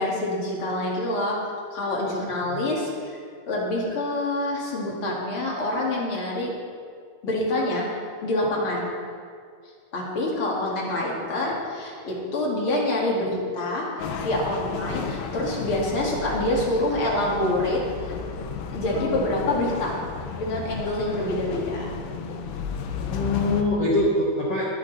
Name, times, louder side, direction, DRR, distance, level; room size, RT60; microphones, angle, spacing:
voice 1, 0.0-1.4 1.7-3.2 3.5-6.5 7.2-7.9 8.2-8.9 9.9-18.1 18.7-19.9 20.4-21.9, left 1 dB, 40° left, -4 dB, 2.0 m, -26 dB
sound 1, 14.0-23.6, left 5 dB, 90° left, 2.0 m, -33 dB
voice 2, 22.9-24.7, left 1 dB, 60° left, -6 dB, 1.6 m, -24 dB
22.0 x 8.4 x 4.1 m, 2.1 s
omnidirectional pair, 5.4 m